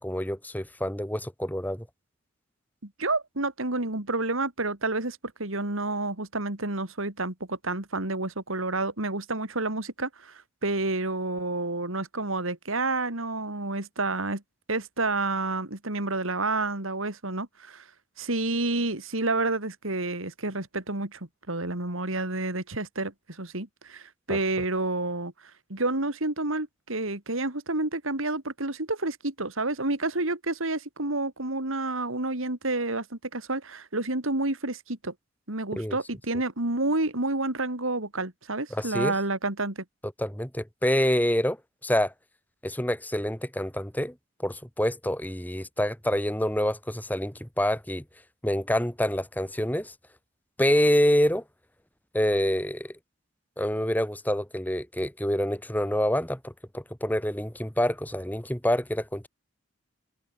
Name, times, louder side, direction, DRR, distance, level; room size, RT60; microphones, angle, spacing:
voice 1, 0.0-1.9 24.3-24.4 35.7-36.0 38.7-39.1 40.2-41.6 41.8-42.1 42.6-44.1 44.4-48.0 48.4-49.9 50.6-51.4 52.1-52.9 53.6-59.3, equal, 10° left, 2.7 m, -27 dB
voice 2, 2.8-14.4 14.7-17.8 18.2-25.3 25.7-35.1 35.5-39.8, right 2 dB, 75° right, 3.2 m, -29 dB
head